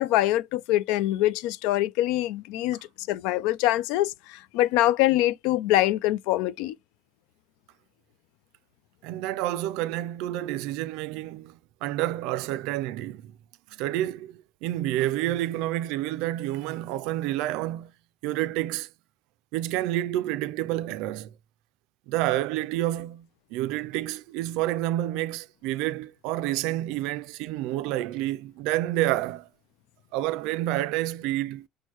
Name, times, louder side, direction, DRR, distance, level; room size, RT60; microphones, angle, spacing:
voice 1, 0.0-6.7, left 15 dB, 80° left, 0.3 m, -24 dB
voice 2, 9.0-13.3 13.7-17.9 18.2-18.9 19.5-21.3 22.1-29.5 30.1-31.7, right 14 dB, 80° right, 0.3 m, -29 dB
6.3 x 2.1 x 2.9 m
cardioid pair, 175°, 0 cm